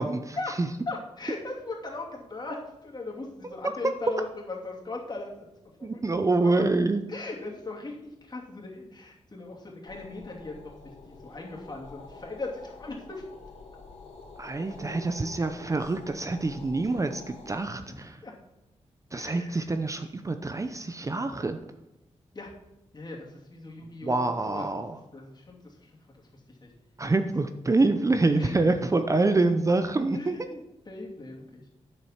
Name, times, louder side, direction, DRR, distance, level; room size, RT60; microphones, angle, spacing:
voice 1, 0.0-0.7 5.8-7.0 14.4-18.2 19.1-21.6 24.0-25.0 27.0-30.4, right 3 dB, 30° right, 8 dB, 0.7 m, -26 dB
voice 2, 0.9-5.5 5.8-6.0 6.4-6.7 7.1-10.7 11.1-13.3 14.8-14.9 16.8-17.0 17.9-18.0 18.2-18.3 19.1-19.6 22.3-22.5 22.9-24.7 25.1-25.9 26.3-26.7 28.3-28.6 29.2-29.5 30.1-30.6 30.9-31.6, left 2 dB, 40° left, -2 dB, 2.7 m, -39 dB
sound 1, 9.8-17.7, left 4 dB, 75° left, 2.9 m, -48 dB
8.6 x 7.4 x 5.9 m, 0.94 s
cardioid pair, 80°, 11 cm